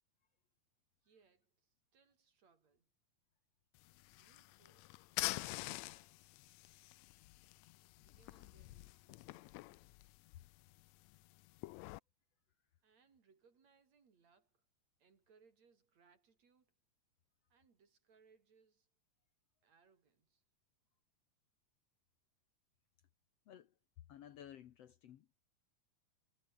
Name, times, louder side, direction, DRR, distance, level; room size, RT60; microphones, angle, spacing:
voice 1, 1.0-2.9 4.2-5.0 5.3-6.6 8.0-9.6 12.8-14.7 15.0-16.7 17.5-18.9 19.6-20.4, right 5 dB, 55° right, 4.7 m, -72 dB
sound 1, 3.7-12.0, left 20 dB, 80° left, 1.6 m, -47 dB
voice 2, 24.1-25.3, left 10 dB, 65° left, 1.9 m, -55 dB
omnidirectional pair, 3.6 m